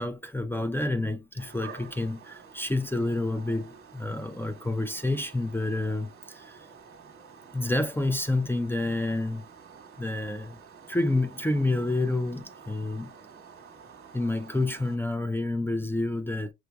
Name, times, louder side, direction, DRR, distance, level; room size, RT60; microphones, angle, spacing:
voice 1, 0.0-6.6 7.5-9.5 10.0-10.6 10.9-13.1 14.1-16.5, left 2 dB, 5° left, 0.4 m, -29 dB
sound 1, 1.4-15.0, right 6 dB, 45° right, 1.1 m, -50 dB
6.0 x 3.3 x 2.2 m
cardioid pair, 90°, 30 cm